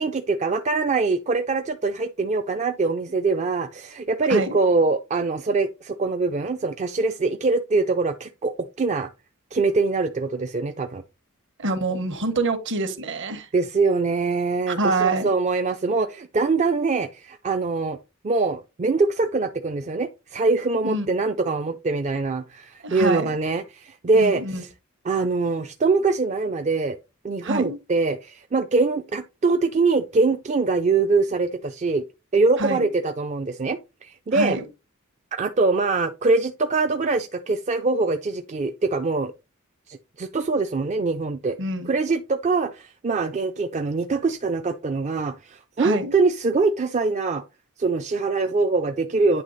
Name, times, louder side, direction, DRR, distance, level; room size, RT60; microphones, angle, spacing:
voice 1, 0.0-9.1 9.5-11.0 13.5-18.0 18.2-24.7 25.1-27.0 27.2-32.0 32.3-34.6 35.3-39.3 39.9-41.6 41.9-47.4 47.8-49.4, right 3 dB, 30° right, 0.4 m, -23 dB
voice 2, 11.6-13.5 14.7-15.3 20.8-21.1 22.8-23.4 24.1-24.6 27.4-27.8 32.6-32.9 34.3-34.6 41.6-41.9 45.8-46.2, right 2 dB, 55° right, 1.1 m, -26 dB
9.1 x 3.1 x 4.0 m
head